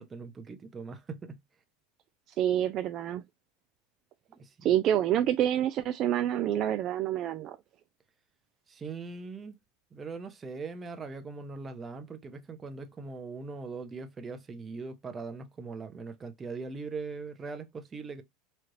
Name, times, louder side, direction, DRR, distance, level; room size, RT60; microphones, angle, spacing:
voice 1, 0.0-1.4 4.3-4.7 8.7-9.6 9.9-18.2, right 4 dB, 20° right, 0.8 m, -41 dB
voice 2, 2.4-3.2 4.6-7.6, right 11 dB, 45° right, 0.4 m, -27 dB
4.2 x 2.5 x 3.1 m
supercardioid pair, 125°, 0 cm